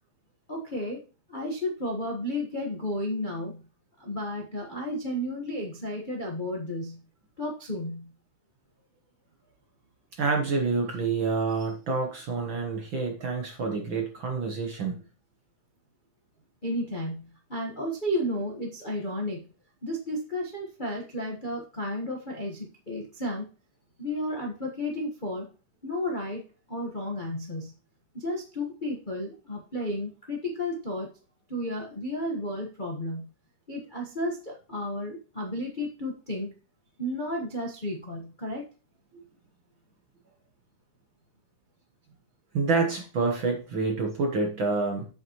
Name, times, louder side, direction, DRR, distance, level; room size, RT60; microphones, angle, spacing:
voice 1, 0.5-1.0 1.3-3.6 4.0-7.0 7.4-8.1 16.6-19.5 19.8-23.5 24.0-25.5 25.8-26.4 26.7-27.7 28.1-31.1 31.5-33.3 33.7-36.5 37.0-38.6, left 1 dB, 60° left, -1 dB, 0.5 m, -32 dB
voice 2, 10.2-15.0 42.5-45.1, right 4 dB, 60° right, 2 dB, 1.3 m, -27 dB
8.2 x 7.8 x 3.0 m, 0.35 s
omnidirectional pair, 3.5 m